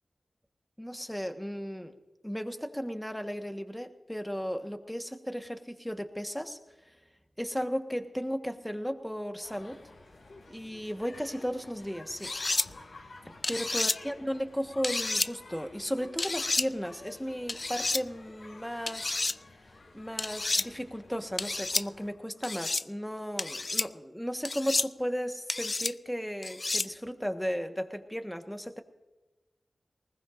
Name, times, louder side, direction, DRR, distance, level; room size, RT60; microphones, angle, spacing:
voice 1, 0.8-1.9 2.2-6.6 7.4-9.8 10.5-12.3 13.5-19.2 19.9-28.8, equal, 5° left, 6 dB, 1.4 m, -35 dB
sound 1, 9.4-22.1, left 2 dB, 85° left, 2.8 m, -52 dB
sound 2, 12.2-12.7 13.4-14.0 14.8-15.3 16.2-16.7 17.5-18.0 18.9-19.4 20.2-20.7 21.4-21.8 22.4-22.8 23.4-23.9 24.4-24.9 25.5-25.9 26.4-26.9, left 3 dB, 45° left, 0.4 m, -30 dB
20.5 x 20.0 x 2.6 m, 1.1 s
cardioid pair, 55°, 0 cm